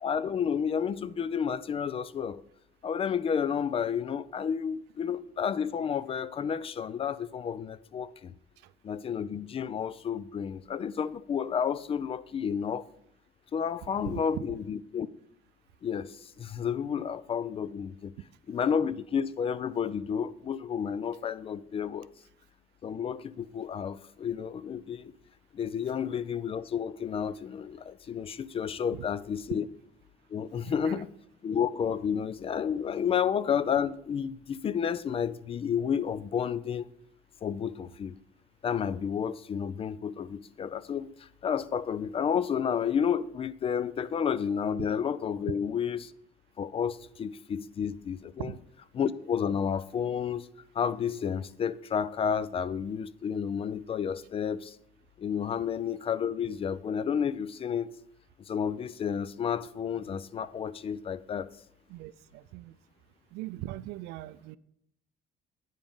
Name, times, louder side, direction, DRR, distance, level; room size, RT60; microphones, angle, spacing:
voice 1, 0.0-2.4 2.8-8.3 8.8-12.8 13.5-15.1 15.8-18.1 18.5-22.1 22.8-25.1 25.5-29.7 30.3-31.1 31.4-36.9 37.4-38.2 38.6-46.1 46.6-48.5 49.0-50.5 50.7-54.8 55.2-57.9 58.5-61.5, left 7 dB, 35° left, 0.4 m, -31 dB
voice 2, 14.0-14.4 17.0-17.1 28.9-29.1 30.6-31.0 48.4-48.6 61.9-62.8 63.3-64.6, right 16 dB, 90° right, 0.4 m, -40 dB
9.0 x 5.1 x 5.4 m
cardioid pair, 110°, 17 cm